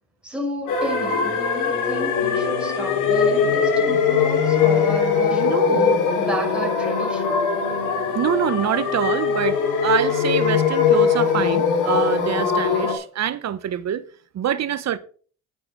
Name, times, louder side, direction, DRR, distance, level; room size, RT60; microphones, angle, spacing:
voice 1, 0.2-7.4, right 1 dB, 5° right, 6.1 m, -31 dB
sound 1, 0.7-12.9, left 6 dB, 85° left, 3.0 m, -21 dB
voice 2, 5.3-5.9 8.1-14.1 14.3-15.0, right 10 dB, 60° right, 1.2 m, -25 dB
9.6 x 7.8 x 5.7 m
cardioid pair, 90°, 30 cm